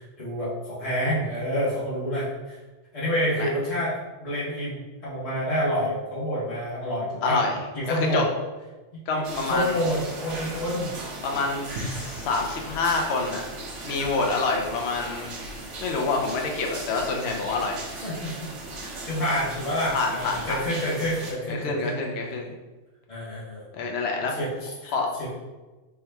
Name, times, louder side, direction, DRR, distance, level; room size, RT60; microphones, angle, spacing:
voice 1, 0.0-2.6 2.9-3.9 4.2-7.4 7.7-8.2 8.9-9.2 9.5-10.9 18.0-18.5 18.8-22.0 23.1-23.7 24.4-24.9 25.2-25.3, equal, 30° left, -9 dB, 1.3 m, -28 dB
voice 2, 7.2-7.6 7.9-8.2 9.1-9.8 11.2-13.4 13.8-15.3 15.8-17.8 19.9-20.6 21.5-22.5 23.7-24.4 24.9-25.1, left 3 dB, 65° left, 1 dB, 0.9 m, -27 dB
sound 1, 9.2-21.3, right 2 dB, 75° right, 1.0 m, -37 dB
3.5 x 3.0 x 3.3 m, 1.2 s
omnidirectional pair, 1.3 m